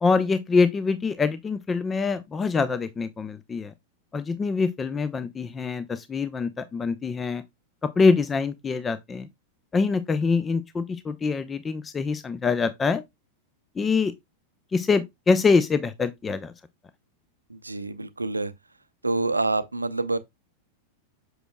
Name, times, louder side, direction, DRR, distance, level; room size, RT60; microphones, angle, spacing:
voice 1, 0.0-3.7 4.1-7.4 7.8-9.3 9.7-13.0 13.8-14.1 14.7-16.5, left 4 dB, 20° left, 0.5 m, -24 dB
voice 2, 17.5-18.5 19.0-20.2, right 2 dB, 80° right, 0.6 m, -27 dB
7.8 x 6.1 x 2.2 m
figure-of-eight pair, 90°, 0 cm